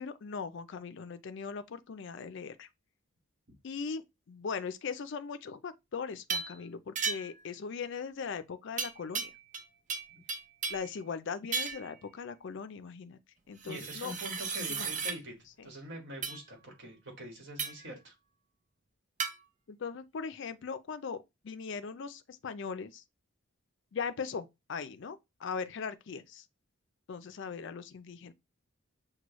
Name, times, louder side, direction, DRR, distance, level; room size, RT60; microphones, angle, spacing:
voice 1, 0.0-2.7 3.6-9.3 10.7-13.2 13.5-14.2 14.7-14.9 15.6-15.7 19.7-21.2 21.4-23.0 23.9-26.4 27.1-28.3, left 5 dB, 60° left, 0.4 m, -39 dB
sound 1, 6.3-6.6 7.0-7.4 8.8-9.6 9.9-10.9 11.5-11.9 13.6-15.2 16.2-16.4 17.6-17.9 19.2-19.4, right 5 dB, 35° right, 0.5 m, -35 dB
voice 2, 13.6-15.3 15.6-18.1, equal, 55° right, 1.5 m, -44 dB
6.1 x 2.2 x 3.0 m
head